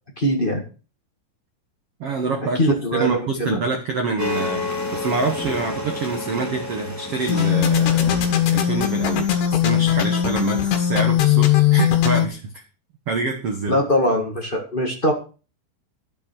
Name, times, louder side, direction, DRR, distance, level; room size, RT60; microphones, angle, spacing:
voice 1, 0.2-0.6 2.6-3.6 13.7-15.1, equal, 35° left, 0 dB, 0.8 m, -21 dB
voice 2, 2.0-4.6 4.9-12.5 13.1-13.8, right 4 dB, 75° right, 5 dB, 1.3 m, -26 dB
sound 1, 4.2-9.1, left 3 dB, 5° left, 1.3 m, -30 dB
sound 2, 7.3-12.3, left 11 dB, 70° left, 3.7 m, -19 dB
12.0 x 8.4 x 6.3 m, 0.35 s
omnidirectional pair, 4.9 m